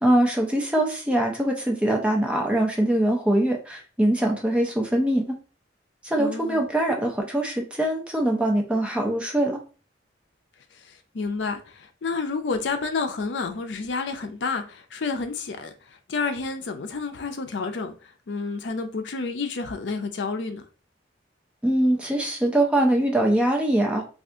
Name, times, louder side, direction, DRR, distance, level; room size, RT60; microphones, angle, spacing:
voice 1, 0.0-5.3 6.0-9.6 21.6-24.1, right 1 dB, 5° right, 0.5 m, -23 dB
voice 2, 6.2-6.7 10.9-15.7 16.1-17.9 18.3-20.6, left 4 dB, 70° left, 0.5 m, -30 dB
2.7 x 2.4 x 3.4 m
head